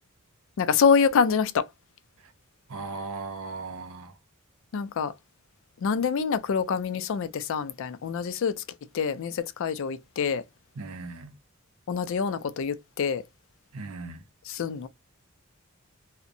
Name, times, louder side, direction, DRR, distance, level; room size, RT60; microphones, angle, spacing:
voice 1, 0.6-1.6 4.7-5.1 5.8-8.5 8.9-10.4 11.9-13.2 14.5-14.9, left 6 dB, 65° left, 0.4 m, -26 dB
voice 2, 2.7-4.1 10.8-11.3 13.7-14.2, right 3 dB, 75° right, 0.6 m, -37 dB
2.5 x 2.1 x 2.5 m
head